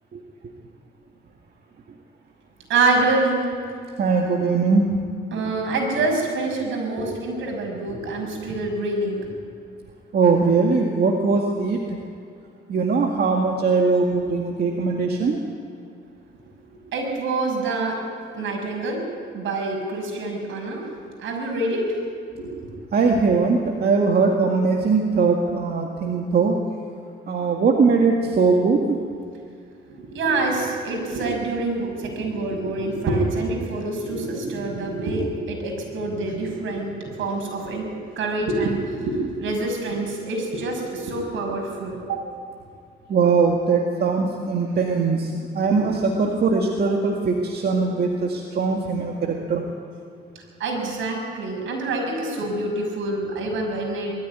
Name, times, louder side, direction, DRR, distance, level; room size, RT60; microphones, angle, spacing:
voice 1, 2.7-3.5 5.3-9.3 16.9-18.0 18.3-19.0 19.3-20.8 21.2-22.0 22.3-22.5 29.9-42.2 43.4-43.5 45.6-45.9 50.6-54.1, right 2 dB, 75° right, 1 dB, 6.0 m, -26 dB
voice 2, 4.0-4.8 10.1-12.0 12.7-15.4 22.9-26.5 27.3-29.0 43.1-49.6, right 4 dB, 55° right, 1 dB, 2.0 m, -21 dB
21.0 x 14.0 x 9.6 m, 2.3 s
cardioid pair, 90°, 20 cm